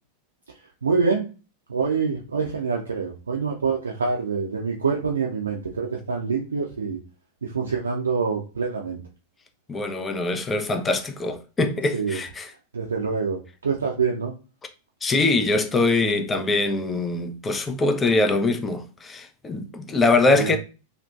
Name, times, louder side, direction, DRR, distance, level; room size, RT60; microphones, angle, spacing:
voice 1, 0.8-1.3 1.7-7.0 7.4-9.0 11.9-12.2 12.7-14.3 20.3-20.5, right 5 dB, 75° right, 0.4 m, -26 dB
voice 2, 9.7-12.5 15.0-20.6, left 3 dB, 15° left, 0.4 m, -23 dB
2.6 x 2.1 x 2.3 m
figure-of-eight pair, 90°, 0 cm